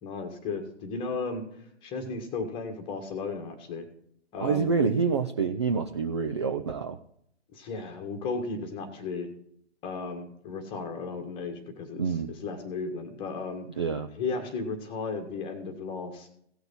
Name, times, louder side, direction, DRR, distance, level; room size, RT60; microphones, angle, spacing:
voice 1, 0.0-1.5 1.8-3.9 4.3-4.7 7.5-9.3 9.8-13.6 14.2-16.3, left 4 dB, 15° left, 5 dB, 1.6 m, -35 dB
voice 2, 4.4-7.0 12.0-12.3 13.8-14.1, right 5 dB, 25° right, 5 dB, 0.4 m, -27 dB
17.0 x 6.5 x 4.3 m, 0.69 s
figure-of-eight pair, 135°, 34 cm